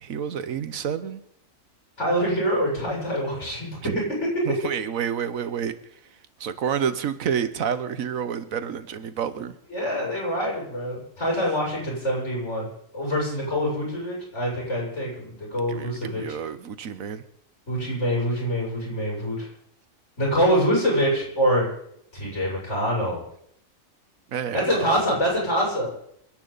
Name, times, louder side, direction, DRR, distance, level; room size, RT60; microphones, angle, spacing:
voice 1, 0.0-1.2 3.8-4.0 4.4-5.7 6.4-9.5 15.7-17.2 24.3-25.0, right 8 dB, 90° right, 12 dB, 1.4 m, -29 dB
voice 2, 2.0-3.7 9.7-12.7 12.9-16.2 17.7-19.5 20.2-21.7 22.1-23.2 24.5-25.9, equal, 60° left, -4 dB, 7.3 m, -25 dB
28.5 x 10.5 x 4.0 m, 0.72 s
omnidirectional pair, 1.4 m